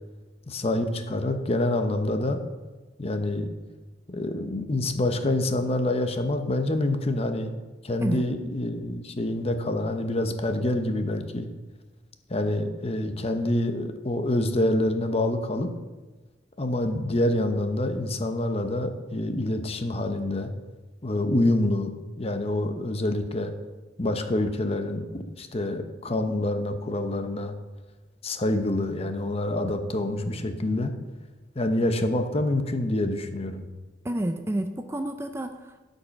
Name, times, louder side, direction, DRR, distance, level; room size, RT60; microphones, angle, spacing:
voice 1, 0.5-2.4 3.0-3.5 4.1-7.5 7.8-11.5 12.3-15.7 16.6-20.5 21.0-21.9 22.2-23.5 24.0-27.5 28.2-30.9 31.6-33.6, left 1 dB, 30° left, 7 dB, 0.8 m, -26 dB
voice 2, 34.0-35.8, right 1 dB, 15° right, 7 dB, 0.4 m, -30 dB
12.5 x 5.5 x 5.8 m, 1.2 s
head